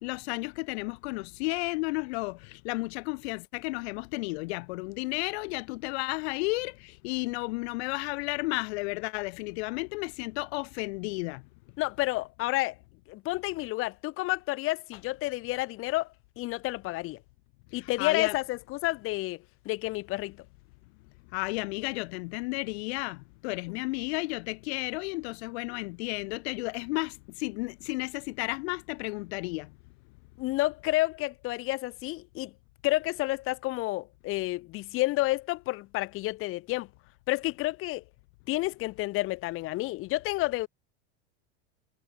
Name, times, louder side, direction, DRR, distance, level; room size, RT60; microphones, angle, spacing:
voice 1, 0.0-11.4 17.8-18.3 21.3-29.7, left 26 dB, 65° left, 0.9 m, -33 dB
voice 2, 11.8-12.8 13.1-16.1 16.4-17.2 17.7-20.4 30.4-32.5 32.8-36.9 37.3-38.0 38.5-40.7, left 19 dB, 40° left, 0.9 m, -30 dB
supercardioid pair, 140°, 34 cm